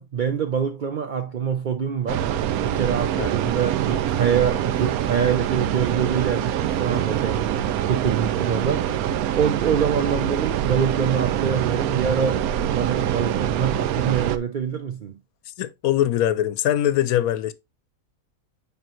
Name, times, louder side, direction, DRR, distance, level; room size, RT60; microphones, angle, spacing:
voice 1, 0.0-2.3 2.6-9.0 9.3-15.1, right 7 dB, 70° right, 0.4 m, -25 dB
sound 1, 2.1-14.4, right 10 dB, 90° right, 1.1 m, -25 dB
voice 2, 15.6-17.5, left 12 dB, 85° left, 1.1 m, -22 dB
8.9 x 3.6 x 3.0 m
omnidirectional pair, 1.5 m